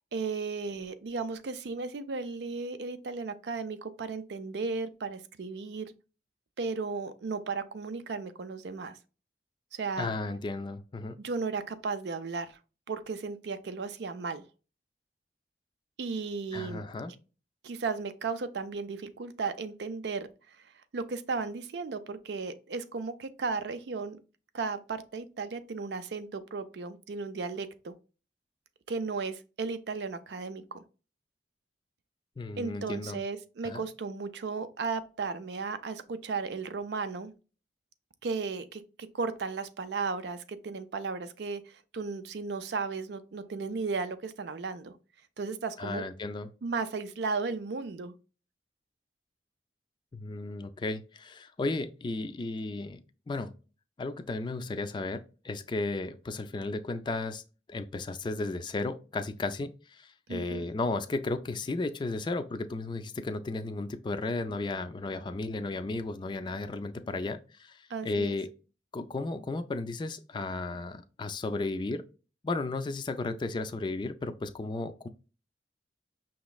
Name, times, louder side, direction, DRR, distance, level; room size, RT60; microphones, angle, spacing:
voice 1, 0.1-5.9 6.6-9.0 9.7-10.1 11.2-12.6 12.9-14.5 16.0-16.8 17.6-20.6 20.9-24.2 24.5-28.0 28.9-30.8 32.6-37.3 38.2-45.0 45.4-46.1 46.6-48.2 60.3-60.7 67.9-68.3, right 4 dB, 70° right, 0.5 m, -35 dB
voice 2, 10.0-11.2 16.5-17.1 32.4-33.2 33.6-33.8 45.8-46.5 50.1-53.0 53.3-53.5 54.0-57.4 57.7-68.5 68.9-72.0 72.4-75.1, left 3 dB, 25° left, 0.3 m, -34 dB
5.7 x 3.0 x 2.3 m
head